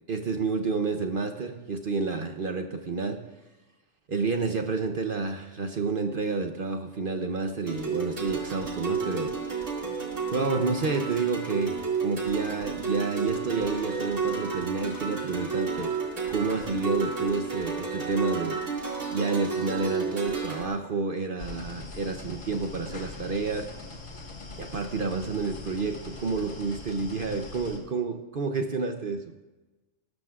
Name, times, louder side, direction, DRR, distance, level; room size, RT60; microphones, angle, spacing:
voice 1, 0.1-3.2 4.1-9.5 10.3-15.9 16.3-18.6 19.1-23.7 24.6-29.2, right 4 dB, 50° right, 5 dB, 0.8 m, -29 dB
sound 1, 7.7-20.7, right 5 dB, 75° right, 2.6 m, -31 dB
sound 2, 21.4-27.8, left 3 dB, 85° left, 2.0 m, -42 dB
18.0 x 13.5 x 2.4 m, 1.1 s
omnidirectional pair, 1.3 m